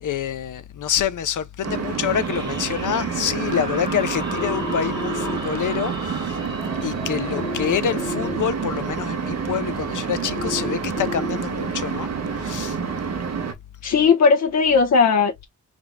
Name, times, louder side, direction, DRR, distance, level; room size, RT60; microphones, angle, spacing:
voice 1, 0.0-6.4 6.8-12.1 12.4-12.8, left 8 dB, 90° left, 0.7 m, -26 dB
sound 1, 1.6-13.5, right 6 dB, 60° right, 1.3 m, -28 dB
sound 2, 2.1-9.3, equal, 15° right, 2.5 m, -37 dB
sound 3, 4.4-5.4 7.4-8.4 10.4-11.4, left 2 dB, 30° left, 3.2 m, -31 dB
voice 2, 13.8-15.4, left 5 dB, 60° left, 1.0 m, -17 dB
5.1 x 3.7 x 2.2 m
wide cardioid pair, 170°, 30 cm